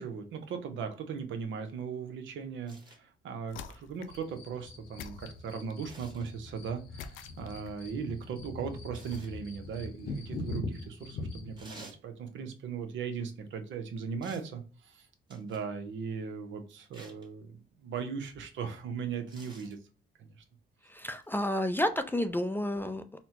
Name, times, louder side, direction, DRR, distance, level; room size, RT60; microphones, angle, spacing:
voice 1, 0.0-19.8, right 6 dB, 75° right, 6 dB, 0.8 m, -38 dB
sound 1, 2.7-3.0 5.9-6.3 8.9-9.4 11.6-12.0 14.2-14.5 15.3-15.7 16.9-17.3 19.3-19.8 21.2-21.3, right 2 dB, 25° right, 1.3 m, -52 dB
sound 2, 3.5-4.3 5.0-5.9 7.0-7.9, left 8 dB, 80° left, 0.4 m, -47 dB
sound 3, 4.1-11.6, left 3 dB, 50° left, 0.8 m, -42 dB
voice 2, 20.9-23.2, left 1 dB, 10° left, 8 dB, 0.3 m, -30 dB
4.1 x 2.1 x 2.9 m, 0.38 s
cardioid pair, 90°, 20 cm